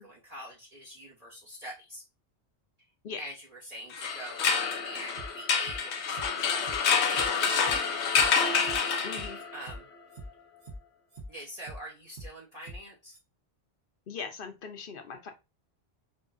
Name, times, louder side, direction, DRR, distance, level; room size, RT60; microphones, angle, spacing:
voice 1, 0.0-2.0 3.2-6.7 7.0-8.1 9.5-9.9 11.3-13.2, equal, 40° right, -4 dB, 1.0 m, -45 dB
sound 1, 3.9-9.6, left 5 dB, 80° left, 1.0 m, -27 dB
sound 2, 5.2-5.8 6.1-6.3 6.6-6.8 7.1-7.8 8.1-8.3 8.6-8.8 9.1-9.8 10.1-10.3 10.6-10.8 11.1-11.8 12.1-12.3 12.6-12.8 13.1-13.2, right 1 dB, 80° right, 1.5 m, -44 dB
voice 2, 9.0-9.4 14.1-15.3, left 5 dB, 55° left, 6 dB, 0.9 m, -40 dB
4.8 x 2.8 x 2.5 m, 0.25 s
omnidirectional pair, 1.1 m